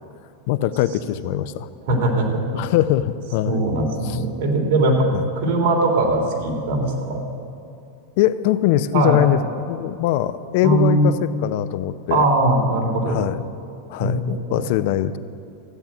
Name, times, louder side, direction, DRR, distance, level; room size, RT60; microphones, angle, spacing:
voice 1, 0.5-1.7 2.5-3.6 4.0-4.2 5.1-5.2 8.2-9.4 9.7-12.2 13.1-13.5 13.9-15.2, left 13 dB, 55° left, 13 dB, 0.6 m, -22 dB
voice 2, 1.9-2.4 3.4-5.1 5.4-7.2 8.9-9.2 10.6-11.1 12.1-13.2 14.0-14.6, right 2 dB, 60° right, 1 dB, 3.6 m, -20 dB
14.5 x 9.5 x 9.0 m, 2.6 s
supercardioid pair, 150°, 0 cm